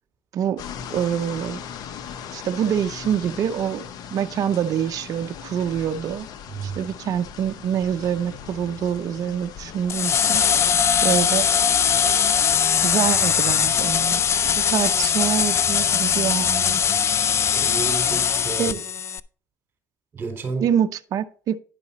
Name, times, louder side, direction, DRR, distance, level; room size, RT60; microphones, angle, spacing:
sound 1, 0.6-14.6, left 8 dB, 60° left, 0.9 m, -39 dB
voice 1, 0.9-1.6 2.3-3.8 4.1-6.3 6.6-10.4 11.0-11.5 12.8-14.2 14.7-16.8 18.6-18.8 20.6-21.6, right 9 dB, 55° right, 0.6 m, -25 dB
sound 2, 9.9-19.2, left 7 dB, 40° left, 0.4 m, -21 dB
voice 2, 17.5-18.8 20.1-20.7, right 4 dB, 30° right, 4.1 m, -31 dB
10.5 x 5.3 x 4.0 m
supercardioid pair, 95°, 7 cm